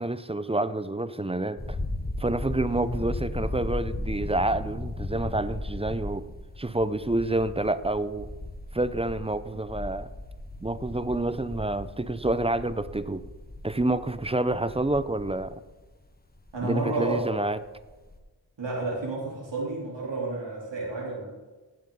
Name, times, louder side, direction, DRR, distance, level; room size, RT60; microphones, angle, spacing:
voice 1, 0.0-1.8 2.2-6.3 6.6-8.3 8.7-10.1 10.6-13.3 13.6-15.5 16.6-17.6, right 2 dB, 15° right, 14 dB, 0.5 m, -28 dB
sound 1, 1.6-17.3 17.6-18.2, left 1 dB, 20° left, 1.2 m, -37 dB
voice 2, 16.5-17.4 18.6-21.3, right 2 dB, 85° right, -4 dB, 3.6 m, -31 dB
17.0 x 6.5 x 4.0 m, 1.2 s
cardioid pair, 50°, 42 cm